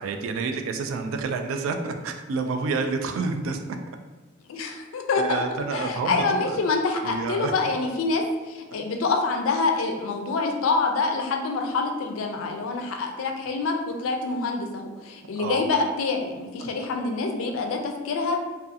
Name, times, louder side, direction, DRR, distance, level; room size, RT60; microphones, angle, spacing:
voice 1, 0.0-3.6 5.2-6.6 7.0-7.5 15.4-15.6 16.6-16.7, right 4 dB, 80° right, 7 dB, 0.3 m, -29 dB
voice 2, 4.5-5.4 5.7-18.4, left 3 dB, 80° left, 3 dB, 0.4 m, -26 dB
2.4 x 2.3 x 2.6 m, 1.2 s
head